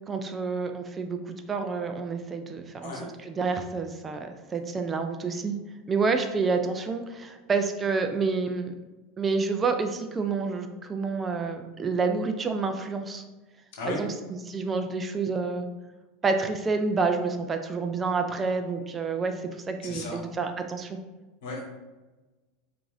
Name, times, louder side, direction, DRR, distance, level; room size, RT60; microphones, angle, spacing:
voice 1, 0.1-5.6 5.9-8.7 9.2-13.2 13.9-14.1 14.4-15.7 16.2-21.0, right 4 dB, 25° right, 6 dB, 0.4 m, -28 dB
voice 2, 19.8-20.2 21.4-21.6, left 3 dB, 70° left, 0 dB, 1.1 m, -34 dB
4.5 x 2.5 x 2.6 m, 1.2 s
hypercardioid pair, 85°, 0 cm